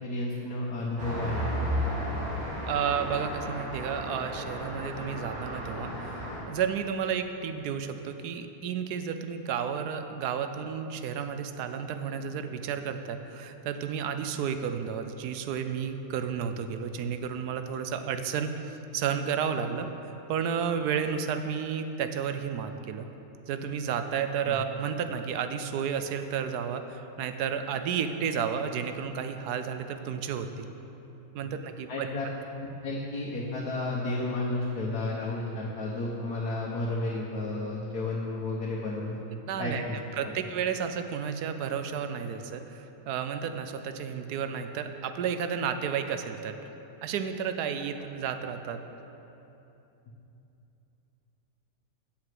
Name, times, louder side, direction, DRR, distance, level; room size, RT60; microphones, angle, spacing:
voice 1, 0.0-1.5 24.4-24.6 31.9-32.3 32.8-39.1 39.6-40.0, left 2 dB, 75° left, -4 dB, 1.6 m, -32 dB
Traffic noise roadway noise, 1.0-6.4, equal, 65° right, 2.6 m, -33 dB
voice 2, 2.7-23.1 23.5-30.7 31.3-32.1 39.5-39.8 40.2-46.6 47.0-48.8, right 7 dB, 85° right, 8 dB, 1.2 m, -32 dB
8.0 x 7.1 x 7.6 m, 3.0 s
omnidirectional pair, 1.6 m